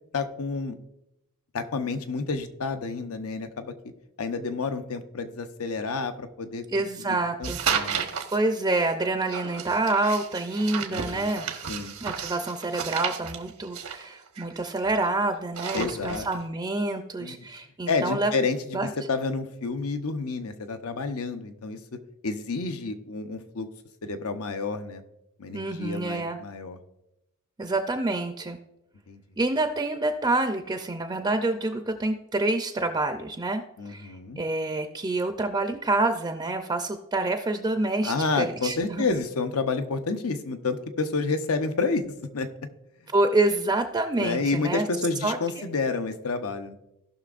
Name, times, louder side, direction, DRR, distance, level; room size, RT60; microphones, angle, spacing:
voice 1, 0.1-0.7 1.5-3.7 4.2-6.6 7.1-8.1 10.9-11.4 11.7-12.0 15.7-16.3 17.2-17.4 17.9-21.8 22.2-23.7 24.0-25.0 25.4-26.8 29.1-29.2 33.8-34.4 38.0-42.0 42.3-42.5 44.2-46.7, left 4 dB, 80° left, 8 dB, 0.7 m, -29 dB
voice 2, 6.7-7.6 8.3-11.5 12.0-18.3 18.7-18.9 25.5-26.4 27.6-28.6 29.4-39.1 43.1-44.8 45.2-45.6, right 2 dB, 20° right, 6 dB, 0.4 m, -27 dB
sound 1, 7.4-8.4 9.3-15.1 15.4-16.4, right 7 dB, 90° right, 1.1 m, -32 dB
17.0 x 6.0 x 2.5 m, 0.88 s
head